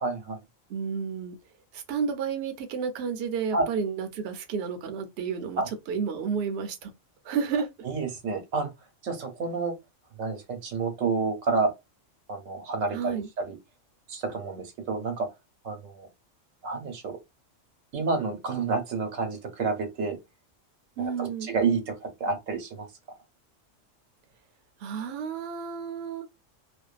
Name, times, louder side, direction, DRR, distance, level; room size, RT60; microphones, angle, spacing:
voice 1, 0.0-0.4 3.5-3.6 5.6-5.7 7.8-8.7 9.0-9.7 10.2-11.7 12.3-13.6 14.1-15.3 15.6-16.1 16.6-17.2 17.9-20.2 21.0-22.9, right 4 dB, 90° right, 1.1 m, -29 dB
voice 2, 0.7-1.4 1.7-6.9 7.2-7.7 12.9-13.3 21.0-21.5 24.8-26.3, right 6 dB, 65° right, 0.7 m, -31 dB
2.5 x 2.2 x 2.3 m
omnidirectional pair, 1.3 m